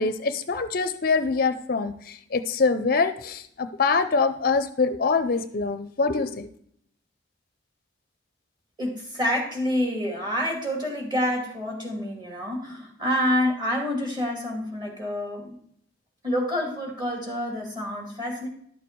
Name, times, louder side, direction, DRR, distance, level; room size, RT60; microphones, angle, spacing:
voice 1, 0.0-6.5, left 4 dB, 45° left, 11 dB, 0.5 m, -24 dB
voice 2, 8.8-15.6 16.2-18.5, equal, 20° right, 1 dB, 2.3 m, -27 dB
11.5 x 7.0 x 4.6 m, 0.67 s
head